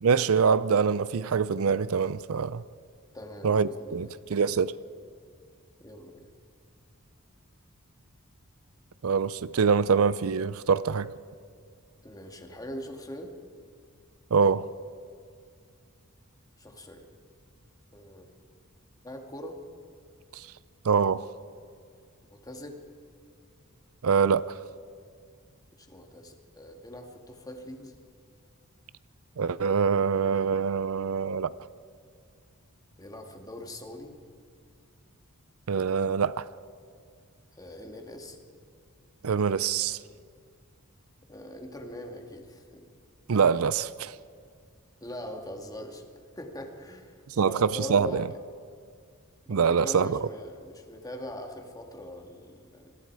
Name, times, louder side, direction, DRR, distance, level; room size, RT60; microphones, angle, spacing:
voice 1, 0.0-2.6 3.4-4.7 9.0-11.1 14.3-14.7 20.3-20.5 20.8-21.3 24.0-24.6 29.4-31.5 35.7-36.5 39.2-40.0 43.3-44.1 47.3-48.2 49.5-50.3, right 6 dB, 70° right, 0.5 m, -24 dB
voice 2, 3.1-4.2 5.8-6.3 12.0-13.3 16.6-17.1 17.9-18.2 19.0-19.6 22.3-22.8 25.8-27.9 33.0-34.1 37.6-38.4 41.3-42.8 45.0-46.0 46.4-48.3 49.5-52.9, equal, 15° left, 2.2 m, -41 dB
26.5 x 22.0 x 4.8 m
head